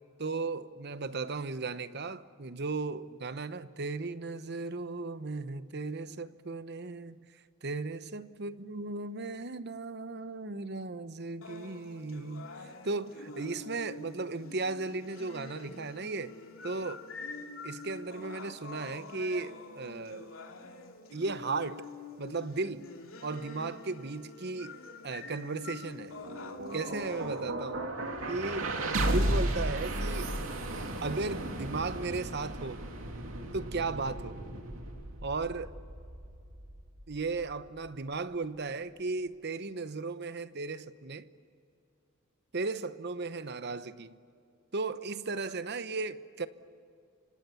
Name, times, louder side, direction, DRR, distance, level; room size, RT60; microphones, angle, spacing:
voice 1, 0.2-7.3 7.6-12.5 12.8-16.4 16.6-17.0 17.6-20.3 21.1-21.8 22.2-22.9 23.2-26.2 26.7-27.9 28.3-28.7 29.0-30.3 31.0-32.8 33.5-34.4 35.2-35.7 37.1-41.2 42.5-44.2 44.7-46.5, right 3 dB, 55° right, 0.9 m, -36 dB
sound 1, 11.4-27.4, left 3 dB, 90° left, 2.8 m, -46 dB
sound 2, 26.0-38.0, right 1 dB, 75° right, 2.9 m, -35 dB
29.0 x 25.5 x 7.1 m
head